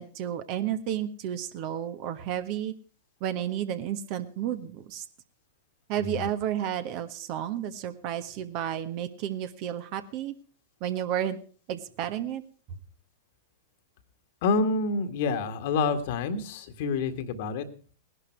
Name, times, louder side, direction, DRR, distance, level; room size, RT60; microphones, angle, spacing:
voice 1, 0.0-2.7 3.2-5.0 5.9-10.3 10.8-11.4 11.7-12.4, right 10 dB, 45° right, 10 dB, 1.5 m, -32 dB
voice 2, 14.4-17.7, left 4 dB, 55° left, 9 dB, 1.8 m, -27 dB
18.5 x 11.5 x 4.6 m, 0.41 s
figure-of-eight pair, 100°, 0 cm